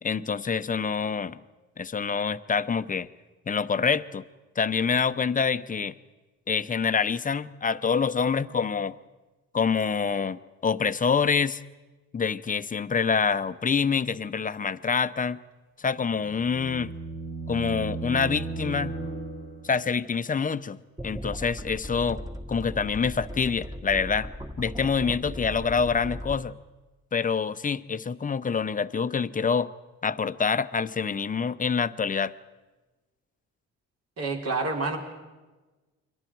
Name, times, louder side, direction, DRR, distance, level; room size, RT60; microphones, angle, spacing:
voice 1, 0.0-1.4 1.8-3.1 3.5-4.2 4.6-6.0 6.5-9.0 9.5-11.6 12.1-15.4 15.8-16.9 17.5-19.0 19.6-20.8 21.0-22.2 22.5-24.3 24.6-26.5 27.1-29.7 30.0-32.3, left 5 dB, 25° left, 13 dB, 0.8 m, -26 dB
sound 1, 15.9-19.8, right 3 dB, 85° right, 6.3 m, -35 dB
sound 2, 21.0-26.4, equal, 10° right, 1.6 m, -37 dB
voice 2, 34.2-35.0, right 3 dB, 55° right, 1 dB, 3.9 m, -28 dB
29.5 x 23.0 x 4.7 m, 1.2 s
cardioid pair, 90°, 30 cm